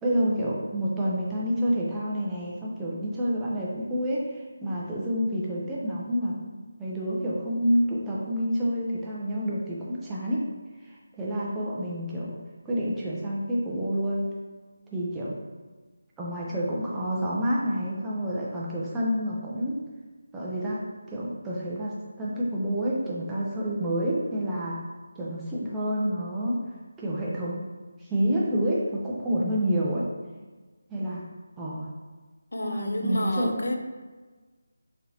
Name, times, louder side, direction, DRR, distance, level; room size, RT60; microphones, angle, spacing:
voice 1, 0.0-6.5 6.8-10.5 11.2-12.4 12.7-14.3 14.9-15.4 16.2-19.8 20.3-20.8 21.1-24.8 25.2-26.6 27.0-27.6 28.0-30.1 30.9-31.3 31.6-31.9 32.6-33.6, equal, 10° right, -6 dB, 0.5 m, -28 dB
voice 2, 32.5-33.8, left 1 dB, 75° left, 4 dB, 0.4 m, -30 dB
3.7 x 2.8 x 2.8 m, 1.3 s
figure-of-eight pair, 160°, 0 cm